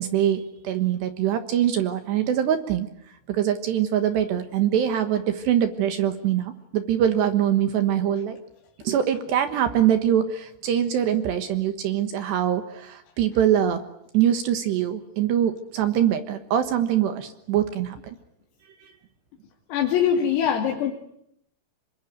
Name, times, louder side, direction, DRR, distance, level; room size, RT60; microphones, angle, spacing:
voice 1, 0.0-2.9 3.3-8.4 8.8-13.8 14.1-18.2 18.8-18.9, right 10 dB, 70° right, 9 dB, 3.1 m, -23 dB
voice 2, 19.7-20.9, left 8 dB, 85° left, 1 dB, 5.1 m, -22 dB
27.0 x 23.5 x 9.2 m, 0.74 s
omnidirectional pair, 6.0 m